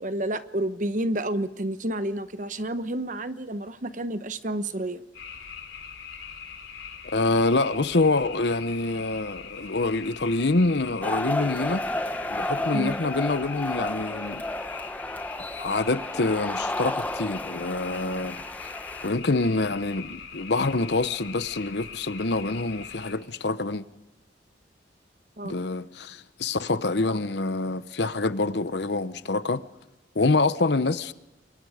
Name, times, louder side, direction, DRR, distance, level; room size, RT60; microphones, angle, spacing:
voice 1, 0.0-5.0 12.7-13.0 25.4-25.6, right 1 dB, 45° right, 1.0 m, -30 dB
sound 1, 5.1-23.1, left 7 dB, 85° left, 3.7 m, -41 dB
voice 2, 7.0-11.9 12.3-14.4 15.6-18.4 19.0-23.8 25.4-29.6 30.1-31.1, left 3 dB, 70° left, 0.9 m, -26 dB
sound 2, 11.0-19.1, left 1 dB, 10° left, 0.7 m, -32 dB
28.5 x 22.5 x 5.0 m
head